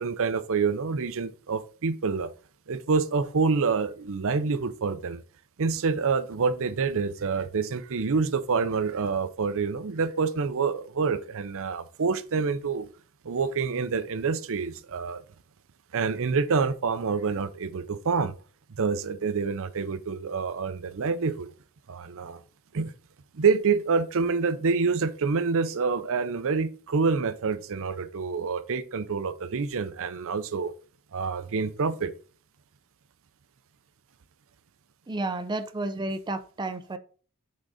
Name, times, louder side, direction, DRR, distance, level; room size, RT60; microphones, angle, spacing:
voice 1, 0.0-2.3 2.7-5.2 5.6-12.9 13.2-15.2 15.9-18.3 18.7-21.5 21.9-22.4 22.7-22.9 23.3-30.7 31.1-32.1, right 5 dB, 65° right, 0.6 m, -27 dB
voice 2, 35.1-37.0, right 2 dB, 20° right, 0.5 m, -31 dB
6.2 x 3.9 x 4.9 m
head